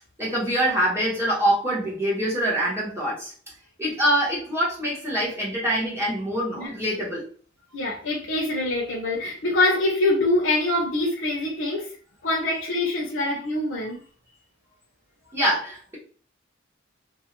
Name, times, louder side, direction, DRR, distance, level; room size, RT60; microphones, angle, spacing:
voice 1, 0.2-3.3 3.8-7.2 15.3-16.0, right 1 dB, 15° right, -6 dB, 1.2 m, -24 dB
voice 2, 7.7-11.9 12.2-14.0, left 2 dB, 80° left, -2 dB, 0.6 m, -24 dB
2.6 x 2.4 x 2.9 m, 0.41 s
head